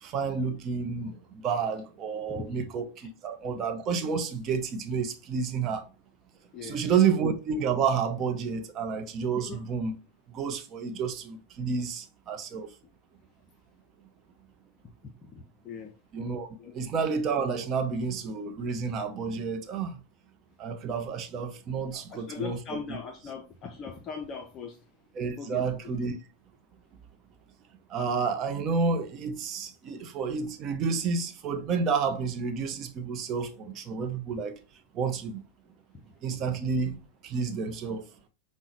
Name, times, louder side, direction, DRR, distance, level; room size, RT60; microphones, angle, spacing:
voice 1, 0.0-1.2 1.4-2.9 3.2-5.8 6.6-9.9 10.3-12.7 16.1-16.5 16.7-20.0 20.6-23.0 25.1-26.1 27.9-34.5 34.9-35.4 36.2-37.0 37.2-38.0, right 5 dB, 30° right, 0.5 m, -30 dB
voice 2, 2.3-2.7 3.0-3.1 6.5-6.8 9.3-9.6 15.2-15.9 16.6-16.7 21.9-24.8 25.4-25.6, left 6 dB, 30° left, 0.5 m, -39 dB
5.3 x 2.1 x 2.9 m
figure-of-eight pair, 90°, 0 cm